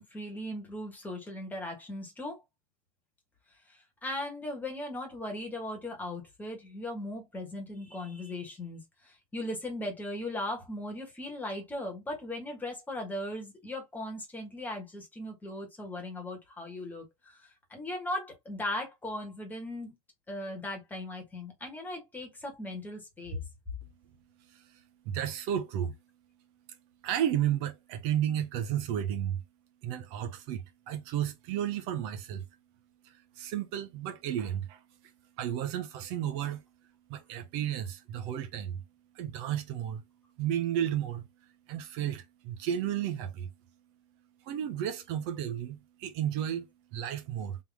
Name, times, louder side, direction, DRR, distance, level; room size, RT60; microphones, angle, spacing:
voice 1, 0.0-2.4 3.7-19.9 20.3-23.4, left 1 dB, 10° left, 1.5 m, -38 dB
voice 2, 24.4-26.0 27.0-29.4 29.8-32.4 33.0-34.8 35.4-36.6 37.1-38.8 39.1-40.0 40.4-41.3 41.7-43.5 44.4-47.6, right 10 dB, 50° right, 0.7 m, -33 dB
3.8 x 3.0 x 3.5 m
supercardioid pair, 150°, 18 cm